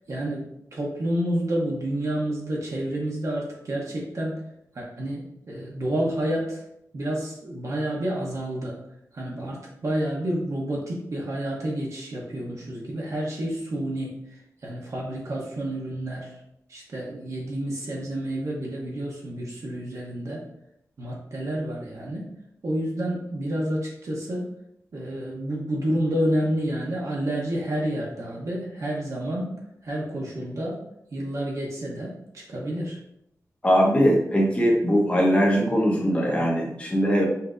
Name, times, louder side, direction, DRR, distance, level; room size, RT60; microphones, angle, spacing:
voice 1, 0.1-4.4 4.7-6.6 6.9-8.8 9.1-16.4 16.7-20.4 21.0-22.3 22.6-24.5 24.9-30.8 31.1-33.0, right 1 dB, 60° right, -3 dB, 0.8 m, -29 dB
voice 2, 33.6-37.2, equal, 20° left, -2 dB, 0.9 m, -21 dB
5.4 x 2.6 x 2.5 m, 0.77 s
wide cardioid pair, 135°, 6 cm